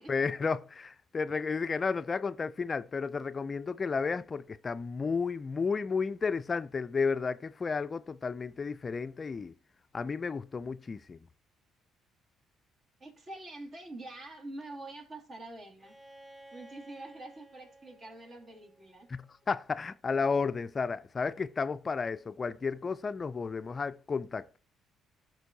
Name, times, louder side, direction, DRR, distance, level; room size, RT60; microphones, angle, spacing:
voice 1, 0.0-9.5 9.9-11.2 19.1-24.6, left 5 dB, 35° left, 0.4 m, -32 dB
voice 2, 13.0-15.9 16.5-19.1, right 2 dB, 45° right, 2.4 m, -45 dB
Bowed string instrument, 15.8-19.6, right 2 dB, 20° right, 2.1 m, -55 dB
12.5 x 4.4 x 2.7 m
supercardioid pair, 60°, 0 cm